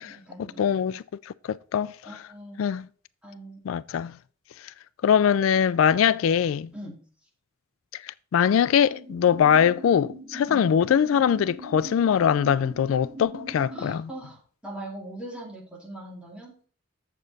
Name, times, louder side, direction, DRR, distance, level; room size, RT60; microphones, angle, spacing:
voice 1, 0.0-0.9 2.0-2.6 3.2-3.6 6.0-6.2 6.7-7.0 10.5-10.7 13.7-16.5, right 1 dB, 5° right, 2.4 m, -41 dB
voice 2, 0.6-1.9 2.6-2.9 3.6-4.2 5.0-6.7 7.9-14.1, left 8 dB, 85° left, 0.3 m, -22 dB
sound 1, 8.9-13.9, right 2 dB, 25° right, 3.9 m, -41 dB
7.5 x 7.0 x 4.0 m
head